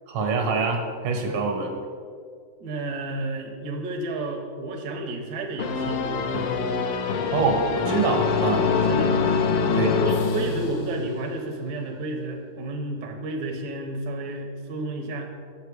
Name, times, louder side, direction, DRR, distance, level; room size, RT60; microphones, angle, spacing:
voice 1, 0.1-1.7 7.3-8.6 9.8-9.9, right 4 dB, 75° right, 3 dB, 2.0 m, -25 dB
voice 2, 2.6-6.6 8.9-9.3 9.7-15.3, right 2 dB, 60° right, 2 dB, 1.3 m, -31 dB
sound 1, 5.6-11.2, left 5 dB, 70° left, 1.3 m, -24 dB
7.3 x 6.9 x 4.8 m, 2.1 s
omnidirectional pair, 2.3 m